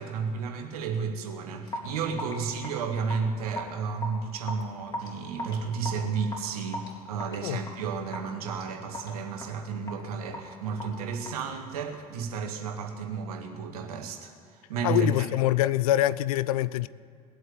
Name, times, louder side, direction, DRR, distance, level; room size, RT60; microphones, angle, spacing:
voice 1, 0.0-15.3, right 5 dB, 70° right, 1.8 m, -32 dB
Raindrop / Drip, 1.7-12.2, left 1 dB, 20° left, 4.1 m, -40 dB
voice 2, 14.8-16.9, left 14 dB, 65° left, 0.5 m, -24 dB
19.5 x 8.0 x 9.3 m
figure-of-eight pair, 60°, 20 cm